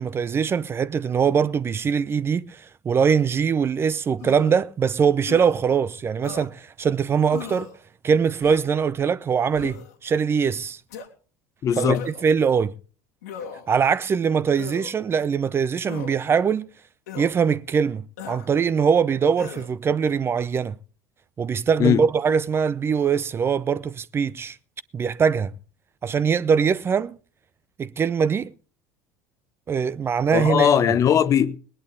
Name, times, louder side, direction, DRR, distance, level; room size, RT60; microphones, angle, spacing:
voice 1, 0.0-7.7 8.0-10.8 11.8-12.7 13.7-16.7 17.2-20.8 21.4-24.6 24.9-25.5 26.0-27.2 27.8-28.5 29.7-30.7, right 6 dB, 30° right, 0.6 m, -22 dB
Grunts Various Male, 4.2-4.7 5.3-5.5 6.2-6.5 7.3-7.7 8.4-8.8 9.5-9.9 10.9-11.1 11.9-12.3 13.2-13.7 14.6-14.9 15.9-16.2 17.1-17.3 18.2-18.5 19.4-19.7, left 7 dB, 75° left, 2.4 m, -37 dB
voice 2, 11.6-12.0 21.8-22.0 30.3-31.6, left 8 dB, 40° left, 1.0 m, -19 dB
19.5 x 11.0 x 3.9 m
hypercardioid pair, 75°, 8 cm